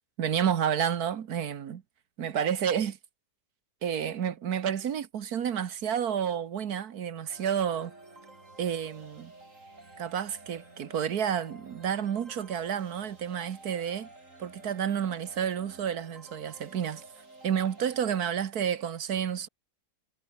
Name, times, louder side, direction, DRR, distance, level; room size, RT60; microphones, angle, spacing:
voice 1, 0.2-1.8 2.2-3.0 3.8-7.9 8.6-9.3 10.0-14.1 14.4-17.0 17.4-19.5, right 8 dB, 75° right, 1.6 m, -30 dB
sound 1, 7.3-18.3, right 2 dB, 50° right, 5.7 m, -52 dB
omnidirectional pair, 1.7 m